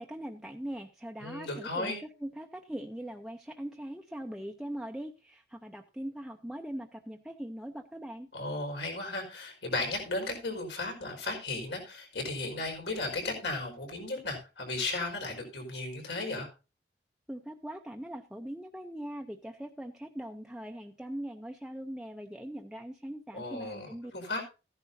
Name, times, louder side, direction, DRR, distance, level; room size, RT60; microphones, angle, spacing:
voice 1, 0.0-8.3 17.3-24.1, right 1 dB, 5° right, 2 dB, 0.6 m, -41 dB
voice 2, 1.2-2.0 8.3-16.5 23.3-24.4, left 2 dB, 85° left, 2 dB, 5.1 m, -35 dB
14.5 x 11.0 x 2.7 m, 0.30 s
head